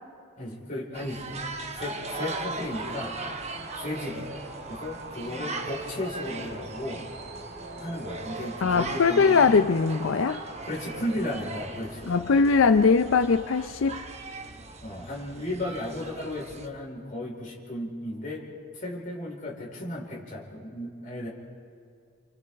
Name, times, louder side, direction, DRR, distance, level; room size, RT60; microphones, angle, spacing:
voice 1, 0.4-1.4 1.7-3.2 3.8-4.3 4.7-7.1 7.8-9.8 10.6-12.4 14.8-18.5 18.7-21.3, left 1 dB, 40° left, -3 dB, 4.3 m, -35 dB
sound 1, 0.9-16.7, right 3 dB, 35° right, 1.0 m, -39 dB
sound 2, 2.0-14.4 18.2-18.4, right 2 dB, 50° right, 2.8 m, -43 dB
voice 2, 8.6-10.4 12.1-14.0, left 5 dB, 80° left, 9 dB, 0.5 m, -21 dB
29.5 x 28.0 x 3.5 m, 2.3 s
head